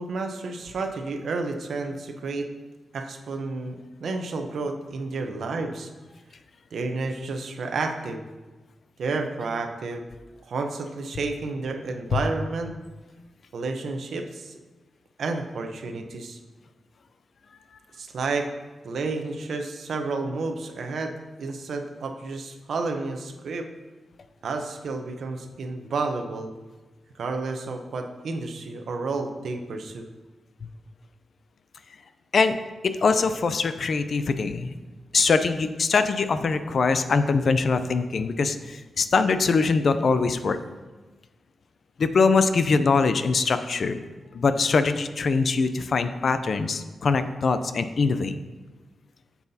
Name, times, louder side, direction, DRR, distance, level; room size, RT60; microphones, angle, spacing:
voice 1, 0.0-2.5 2.9-5.9 6.7-8.2 9.0-10.0 10.5-12.8 13.5-14.5 15.2-16.4 18.0-18.5 18.8-21.1 21.4-23.7 24.4-26.5 27.2-30.1, right 3 dB, 65° right, 5 dB, 0.7 m, -31 dB
voice 2, 32.8-34.7 35.1-40.6 42.0-44.0 44.3-48.3, left 4 dB, 50° left, 10 dB, 0.4 m, -23 dB
9.4 x 7.0 x 2.8 m, 1.2 s
wide cardioid pair, 150°, 0 cm